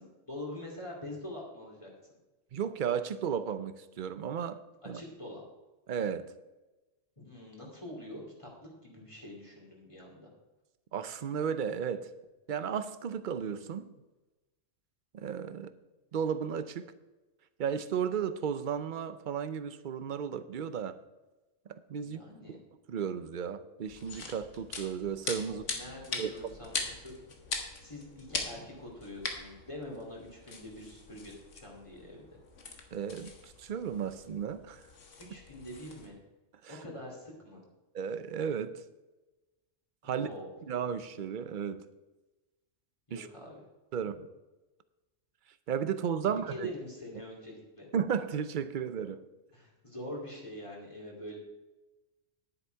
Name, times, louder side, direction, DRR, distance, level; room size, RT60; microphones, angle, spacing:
voice 1, 0.0-1.9 4.8-5.4 7.2-10.3 22.0-22.6 25.5-27.1 27.8-32.2 35.2-36.2 36.7-37.6 40.0-40.5 43.1-43.6 46.2-47.9 49.5-51.4, left 1 dB, 25° left, -3 dB, 2.8 m, -45 dB
voice 2, 2.5-5.0 5.9-6.3 10.9-12.1 12.5-13.9 15.1-15.7 16.1-16.9 17.6-21.0 21.7-22.2 22.5-22.6 22.9-25.6 26.2-26.3 32.9-34.8 36.6-36.8 37.9-38.8 40.0-40.3 40.7-41.9 43.1-43.3 43.9-44.3 45.7-46.7 47.9-49.3, right 7 dB, 50° right, 12 dB, 0.7 m, -34 dB
sound 1, 23.9-36.1, left 4 dB, 75° left, 1.8 m, -42 dB
10.5 x 9.8 x 4.6 m, 1.1 s
omnidirectional pair, 1.3 m